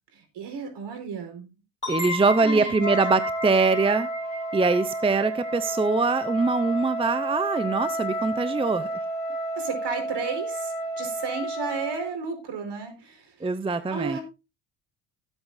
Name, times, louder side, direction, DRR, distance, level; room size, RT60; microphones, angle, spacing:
voice 1, 0.1-1.5 2.1-2.8 9.6-13.3 13.9-14.2, right 5 dB, 60° right, 6 dB, 4.8 m, -33 dB
sound 1, 1.8-7.3, left 2 dB, 15° left, 5.3 m, -36 dB
voice 2, 1.9-4.1 4.5-8.9 13.4-14.2, right 4 dB, 10° right, 12 dB, 0.7 m, -23 dB
Wind instrument woodwind instrument, 2.8-12.1, right 1 dB, 45° left, 2.7 m, -31 dB
16.5 x 8.2 x 2.6 m, 0.27 s
cardioid pair, 100°, 46 cm